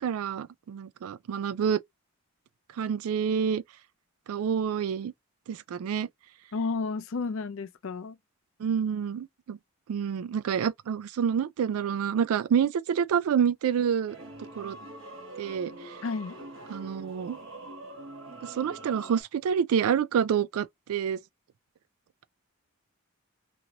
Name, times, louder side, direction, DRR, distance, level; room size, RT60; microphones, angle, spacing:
voice 1, 0.0-1.8 2.8-3.6 4.3-5.1 5.5-6.1 8.6-9.6 9.9-14.2 14.6-14.8 15.4-15.9 16.7-17.4 18.4-21.2, right 7 dB, 80° right, 0.3 m, -28 dB
voice 2, 6.5-8.2 16.0-16.4, left 4 dB, 65° left, 0.5 m, -32 dB
sound 1, 14.1-19.2, right 2 dB, 60° right, 1.1 m, -44 dB
3.0 x 2.6 x 2.8 m
head